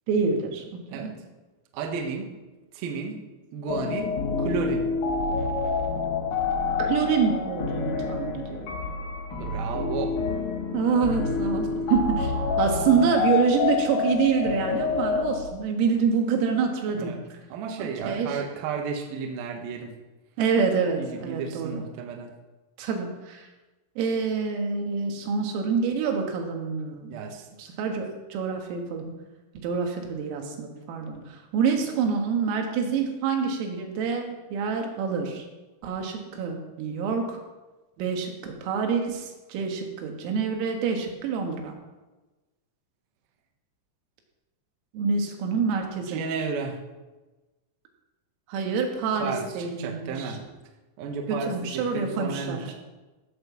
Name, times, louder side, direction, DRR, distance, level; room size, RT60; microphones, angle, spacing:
voice 1, 0.1-1.1 6.8-8.8 10.7-12.3 12.6-17.1 17.8-18.4 20.4-21.8 22.8-23.5 24.0-27.2 27.6-29.1 29.6-35.5 35.8-37.4 38.0-41.7 44.9-46.2 48.5-50.4 51.3-52.7, right 6 dB, 85° right, 3 dB, 4.3 m, -27 dB
voice 2, 1.7-2.3 2.7-3.2 3.5-4.1 4.4-4.9 9.3-10.2 17.0-17.2 17.5-19.9 21.0-22.3 27.1-27.5 46.1-46.8 49.2-50.4 51.0-52.7, right 5 dB, 65° right, 2 dB, 2.5 m, -33 dB
sound 1, 3.7-15.4, left 5 dB, 65° left, 2.4 m, -28 dB
15.5 x 6.8 x 6.9 m, 1.2 s
omnidirectional pair, 5.9 m